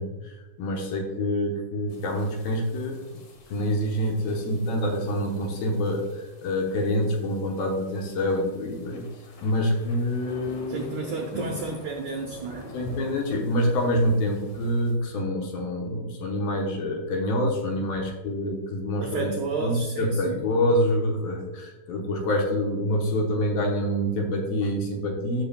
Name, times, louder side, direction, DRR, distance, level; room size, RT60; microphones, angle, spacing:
voice 1, 0.0-3.0 3.5-9.1 9.4-10.9 12.7-19.3 19.6-25.4, equal, 70° left, 1 dB, 2.5 m, -26 dB
sound 1, 1.9-14.9, left 1 dB, 55° left, 2.9 m, -45 dB
voice 2, 10.7-12.7 19.0-20.5, right 3 dB, 85° right, 1 dB, 1.6 m, -32 dB
14.5 x 6.2 x 2.3 m, 1.2 s
omnidirectional pair, 4.8 m